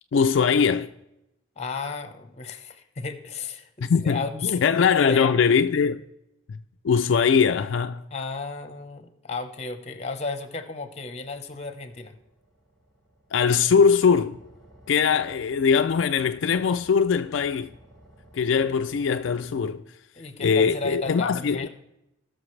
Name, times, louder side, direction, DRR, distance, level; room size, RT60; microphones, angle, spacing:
voice 1, 0.1-0.9 3.8-6.0 6.8-8.0 13.3-14.4 14.9-17.7 18.3-19.8 20.4-21.7, left 6 dB, 75° left, 0.4 m, -21 dB
voice 2, 1.6-5.3 8.1-12.1 20.2-21.7, left 4 dB, 35° left, 1.0 m, -33 dB
sound 1, 11.1-19.6, right 1 dB, ahead, 4.4 m, -54 dB
19.0 x 6.4 x 3.2 m
head